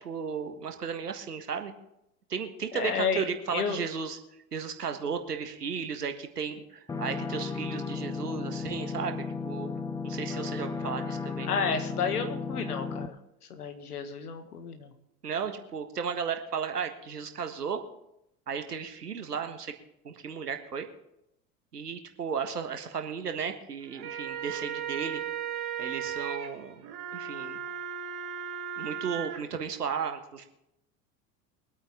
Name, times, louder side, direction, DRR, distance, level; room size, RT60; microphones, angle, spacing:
voice 1, 0.0-1.7 2.3-4.2 4.5-9.7 10.0-11.5 15.2-17.8 18.5-19.7 20.0-20.9 21.7-25.2 25.8-27.6 28.8-30.5, right 6 dB, 80° right, 6 dB, 1.6 m, -34 dB
voice 2, 2.7-3.8 11.4-13.2 13.5-14.9, left 6 dB, 75° left, 7 dB, 1.8 m, -31 dB
sound 1, 6.9-13.1, left 5 dB, 10° left, 0.5 m, -34 dB
sound 2, 23.8-29.4, right 9 dB, 45° right, 2.1 m, -36 dB
23.5 x 8.9 x 3.7 m, 0.82 s
figure-of-eight pair, 75°, 46 cm